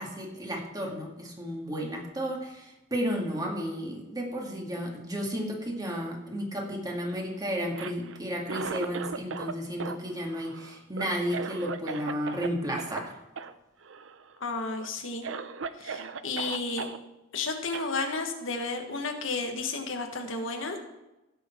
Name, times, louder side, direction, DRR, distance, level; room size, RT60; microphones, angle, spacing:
voice 1, 0.0-13.1, equal, 20° right, 0 dB, 2.1 m, -33 dB
Cough, 7.7-9.5 9.8-12.5 12.8-13.0 13.4-13.5 13.8-14.3 14.8-14.9 15.2-17.0 17.7-17.9, right 5 dB, 75° right, 0.6 m, -37 dB
voice 2, 14.4-15.3 15.8-16.9 17.3-20.8, left 3 dB, 80° left, 4 dB, 1.5 m, -32 dB
16.0 x 6.6 x 4.5 m, 0.99 s
head